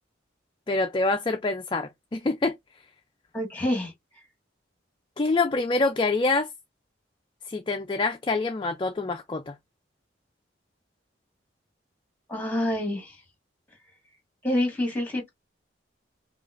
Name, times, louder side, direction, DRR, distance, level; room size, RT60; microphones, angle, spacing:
voice 1, 0.7-2.5 5.2-6.5 7.5-9.5, left 3 dB, 25° left, 0.4 m, -26 dB
voice 2, 3.3-3.9 12.3-13.2 14.4-15.3, left 1 dB, 10° left, 1.6 m, -27 dB
5.2 x 2.4 x 2.5 m
head